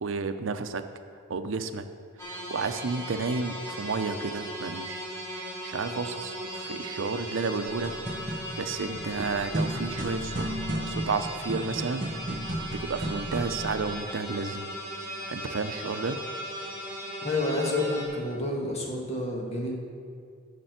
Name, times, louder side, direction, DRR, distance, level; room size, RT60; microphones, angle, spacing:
voice 1, 0.0-0.8 1.3-1.9 2.3-5.0 5.3-10.5 10.8-12.1 12.7-14.7 15.0-16.2, right 4 dB, 85° right, 9 dB, 0.6 m, -32 dB
sound 1, 2.2-18.1, equal, 15° left, 2.4 m, -38 dB
sound 2, 7.8-13.9, right 1 dB, 40° right, 0.9 m, -34 dB
voice 2, 17.2-19.7, left 2 dB, 35° left, -1 dB, 1.7 m, -29 dB
8.5 x 6.7 x 8.0 m, 2.2 s
head